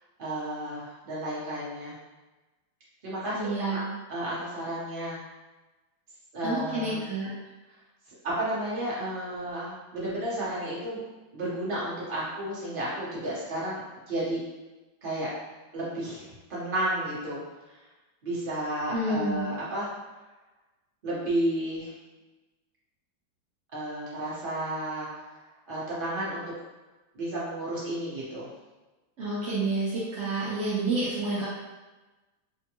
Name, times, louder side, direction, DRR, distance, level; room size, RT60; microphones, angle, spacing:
voice 1, 0.2-1.9 3.0-3.8 4.1-5.2 6.3-7.0 8.2-11.0 11.3-14.4 15.0-15.3 15.7-17.4 18.2-19.9 21.0-21.9 23.7-25.2 25.7-26.4 27.1-28.5, right 1 dB, 35° right, -8 dB, 0.9 m, -32 dB
voice 2, 3.3-3.9 6.4-7.3 18.9-19.5 29.2-31.5, right 2 dB, 70° right, -9 dB, 0.7 m, -29 dB
3.4 x 2.2 x 2.9 m, 1.2 s
omnidirectional pair, 2.0 m